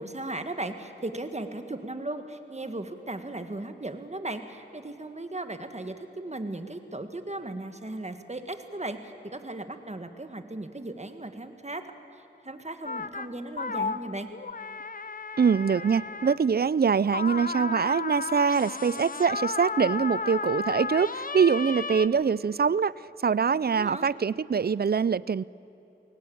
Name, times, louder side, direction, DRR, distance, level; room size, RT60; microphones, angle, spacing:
voice 1, 0.0-11.8 12.1-14.3 23.7-24.1, right 2 dB, 35° right, 8 dB, 1.6 m, -37 dB
sound 1, 12.8-13.3 13.6-16.4 17.1-22.1, left 4 dB, 50° left, 0.8 m, -33 dB
voice 2, 15.4-22.9 23.2-25.4, right 6 dB, 60° right, 21 dB, 0.4 m, -24 dB
22.0 x 18.0 x 8.7 m, 3.0 s
wide cardioid pair, 45°, 19 cm